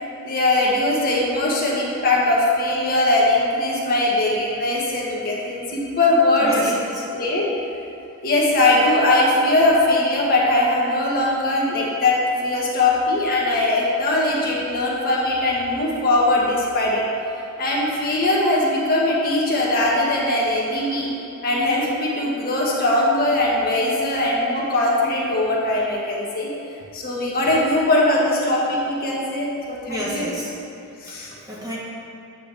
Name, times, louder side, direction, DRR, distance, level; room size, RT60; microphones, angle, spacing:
voice 1, 0.2-6.7 7.1-7.5 8.2-17.0 17.6-21.1 21.4-26.5 26.9-30.3 31.0-31.3, left 2 dB, 40° left, -4 dB, 1.3 m, -20 dB
voice 2, 6.4-7.0 29.9-30.5 31.1-31.8, equal, 15° right, -7 dB, 1.6 m, -31 dB
8.5 x 4.2 x 6.9 m, 2.8 s
head